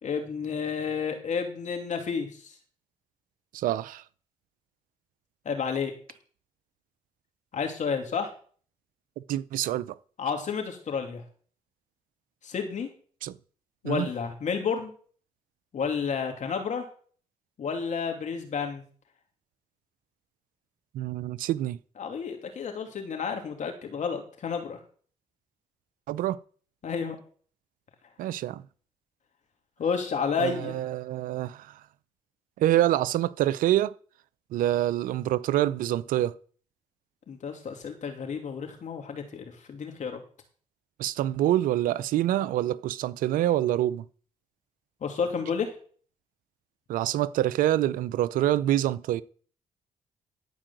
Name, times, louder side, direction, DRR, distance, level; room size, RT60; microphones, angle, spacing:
voice 1, 0.0-2.5 5.4-5.9 7.5-8.3 10.2-11.2 12.4-12.9 13.8-14.9 15.7-16.9 17.6-18.8 22.0-24.8 26.8-27.2 29.8-30.8 37.3-40.2 45.0-45.7, left 6 dB, 60° left, 2.9 m, -31 dB
voice 2, 3.5-4.0 9.3-10.0 13.2-13.3 13.8-14.1 20.9-21.8 26.1-26.4 28.2-28.6 30.4-31.7 32.6-33.9 34.5-36.3 41.0-44.0 46.9-49.2, right 13 dB, 80° right, 0.6 m, -26 dB
14.0 x 4.9 x 7.8 m
supercardioid pair, 55°, 14 cm